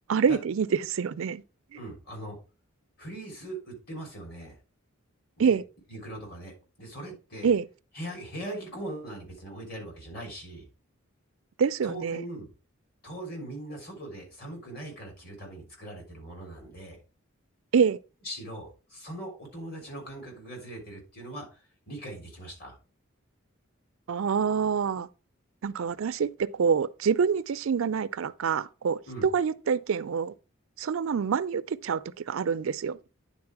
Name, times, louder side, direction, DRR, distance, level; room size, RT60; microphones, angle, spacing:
voice 1, 0.1-1.4 5.4-5.6 7.4-7.7 11.6-12.2 17.7-18.0 24.1-25.1 25.6-30.3 30.8-33.1, right 6 dB, 70° right, 0.4 m, -26 dB
voice 2, 1.7-2.4 3.0-4.6 5.4-5.6 5.9-7.5 7.9-10.7 11.8-12.5 13.0-17.0 18.2-22.7 29.1-29.3, right 1 dB, 45° left, 3.4 m, -40 dB
9.6 x 4.2 x 4.6 m
head